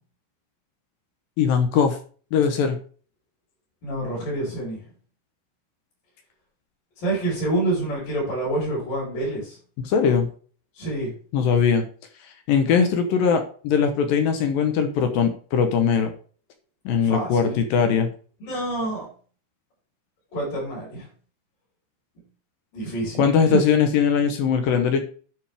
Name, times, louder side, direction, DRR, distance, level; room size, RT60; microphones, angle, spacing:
voice 1, 1.4-2.0 2.3-2.8 9.8-10.3 11.3-11.9 12.5-16.1 16.9-18.1 23.2-25.0, left 6 dB, 75° left, 6 dB, 2.2 m, -20 dB
voice 2, 3.8-4.9 7.0-9.6 10.8-11.1 17.0-17.6 18.4-19.1 20.3-21.1 22.7-23.6, right 2 dB, 50° left, -9 dB, 6.2 m, -27 dB
11.0 x 5.4 x 3.5 m, 0.41 s
omnidirectional pair, 5.0 m